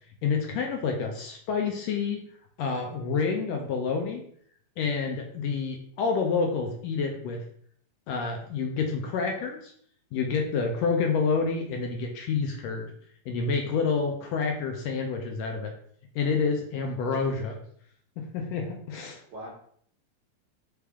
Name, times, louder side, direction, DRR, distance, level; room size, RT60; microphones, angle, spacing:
voice 1, 0.2-2.2 2.6-4.2 4.8-7.4 8.1-9.7 10.1-12.9 13.3-15.7 16.1-17.5 18.2-19.2, left 5 dB, 80° left, 3 dB, 1.6 m, -28 dB
voice 2, 17.0-17.5 19.3-19.5, right 1 dB, 65° right, -4 dB, 1.1 m, -43 dB
4.5 x 3.4 x 3.5 m, 0.62 s
omnidirectional pair, 3.4 m